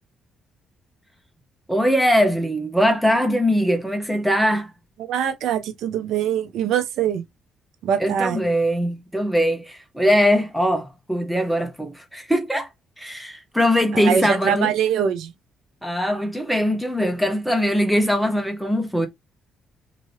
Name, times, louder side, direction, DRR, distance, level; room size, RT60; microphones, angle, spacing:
voice 1, 1.7-4.7 8.0-12.7 13.0-14.7 15.8-19.1, equal, ahead, 0.7 m, -21 dB
voice 2, 5.1-7.2 7.8-8.4 13.9-15.3, right 8 dB, 80° right, 0.6 m, -23 dB
2.7 x 2.6 x 3.1 m
cardioid pair, 90°, 0 cm